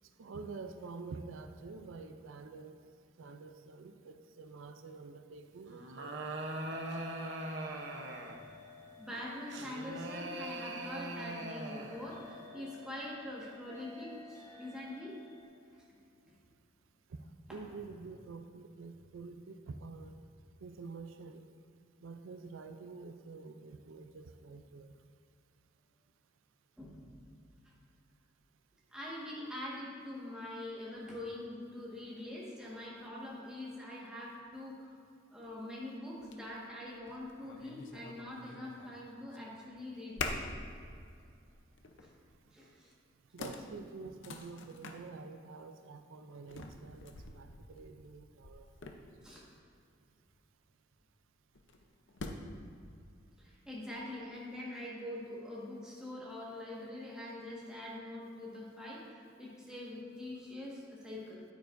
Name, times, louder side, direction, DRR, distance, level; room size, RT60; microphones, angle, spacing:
voice 1, 0.2-2.8 3.2-6.3 17.5-20.2 20.6-21.5 22.0-24.9 43.3-48.7, right 4 dB, 80° right, 7 dB, 0.4 m, -48 dB
sound 1, 5.7-8.5 9.5-12.1, right 1 dB, 60° right, 0.8 m, -41 dB
sound 2, 6.4-15.4, left 2 dB, 15° left, 0.8 m, -54 dB
voice 2, 8.9-15.1 17.5-17.6 26.8-27.4 27.6-27.7 28.9-34.9 35.3-40.4 42.0-42.1 42.5-42.9 49.2-49.4 53.4-61.4, left 1 dB, 5° right, -6 dB, 1.5 m, -44 dB
sound 3, 35.4-35.5 36.2-36.4 36.9-39.0 39.3-39.8 40.2-40.7 41.1-41.2 41.8-42.2 42.9-43.0 43.4-45.0 46.5-49.4 51.5-52.6, left 3 dB, 65° left, 0.6 m, -44 dB
9.3 x 9.0 x 2.6 m, 2.4 s
head